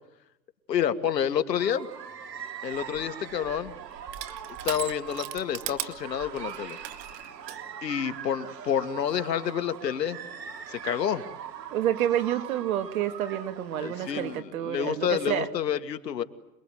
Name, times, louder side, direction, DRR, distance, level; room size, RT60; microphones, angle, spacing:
voice 1, 0.7-1.9 2.6-3.7 4.6-6.8 7.8-10.2 10.7-11.2 13.8-16.2, left 9 dB, 75° left, 9 dB, 2.4 m, -29 dB
sound 1, 1.6-14.4, right 8 dB, 75° right, 2.8 m, -42 dB
Crushing, 2.7-7.6, right 13 dB, 35° right, 2.2 m, -39 dB
voice 2, 11.7-15.5, right 11 dB, 55° right, 9 dB, 2.9 m, -29 dB
28.0 x 22.5 x 9.3 m, 0.92 s
hypercardioid pair, 140°, 50 cm